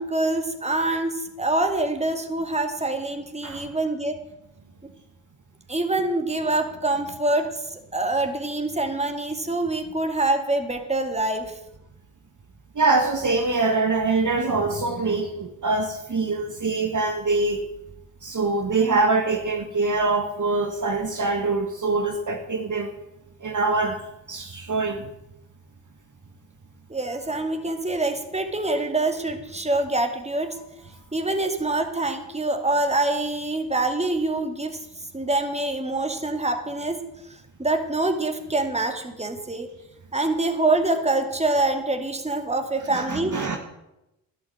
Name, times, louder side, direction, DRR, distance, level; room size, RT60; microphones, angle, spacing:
voice 1, 0.0-4.2 5.7-7.5 7.9-11.6 26.9-30.5 31.1-34.8 35.1-37.0 37.6-39.7 40.1-43.3, right 2 dB, 15° right, 5 dB, 2.3 m, -25 dB
voice 2, 12.7-17.6 18.2-22.9 23.4-24.0 24.3-25.0 42.9-43.6, right 3 dB, 35° right, 4 dB, 1.7 m, -24 dB
11.5 x 8.7 x 7.8 m, 0.90 s
hypercardioid pair, 40°, 49 cm